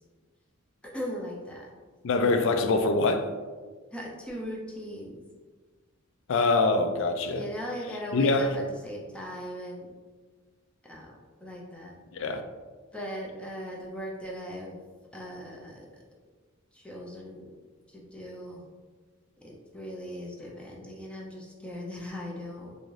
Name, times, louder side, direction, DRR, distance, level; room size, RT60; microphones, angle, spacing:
voice 1, 0.9-1.7 3.9-5.2 7.3-9.9 10.8-12.0 12.9-14.8 15.1-16.0 16.7-17.4 17.9-18.6 19.4-22.8, equal, 5° left, -3 dB, 0.5 m, -39 dB
voice 2, 2.0-3.3 6.3-7.4 8.1-8.6 12.1-12.4, left 3 dB, 65° left, 7 dB, 0.4 m, -24 dB
3.8 x 2.6 x 3.1 m, 1.4 s
head